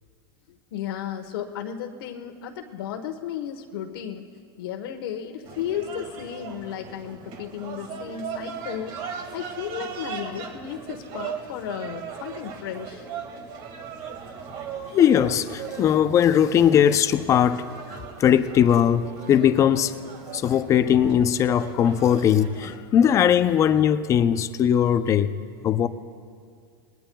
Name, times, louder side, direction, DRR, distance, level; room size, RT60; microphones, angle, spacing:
voice 1, 0.5-4.3 4.6-13.1, left 9 dB, 70° left, 1.2 m, -34 dB
sound 1, 5.4-22.8, right 6 dB, 40° right, 1.9 m, -38 dB
voice 2, 14.9-19.9 20.3-25.3 25.6-25.9, left 9 dB, 25° left, 0.5 m, -20 dB
28.0 x 20.0 x 2.3 m
supercardioid pair, 140°, 13 cm